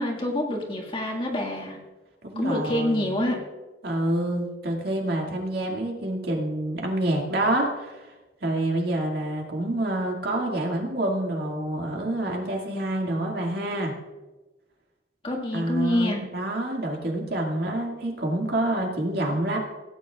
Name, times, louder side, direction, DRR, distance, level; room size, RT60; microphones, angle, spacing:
voice 1, 0.0-1.8 2.4-3.4 15.2-16.2, left 1 dB, 30° left, 0 dB, 1.9 m, -26 dB
voice 2, 2.2-3.2 3.8-8.1 8.4-13.9 15.5-19.6, right 1 dB, 60° right, 0 dB, 2.2 m, -27 dB
17.0 x 9.5 x 2.4 m, 1.2 s
head